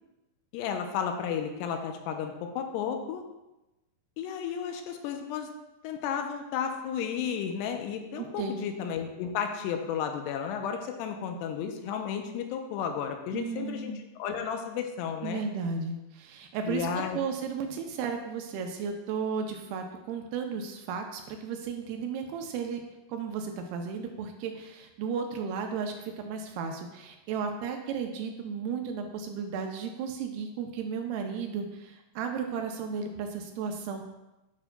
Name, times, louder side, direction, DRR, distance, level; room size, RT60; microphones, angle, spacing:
voice 1, 0.5-3.2 4.2-5.5 5.8-13.9 14.2-15.4 16.7-17.2, left 7 dB, 85° left, 4 dB, 2.7 m, -33 dB
voice 2, 8.2-8.7 13.3-14.0 15.2-16.9 17.1-22.8 23.1-34.0, right 6 dB, 80° right, 4 dB, 2.4 m, -34 dB
9.1 x 5.9 x 2.2 m, 0.99 s
omnidirectional pair, 4.8 m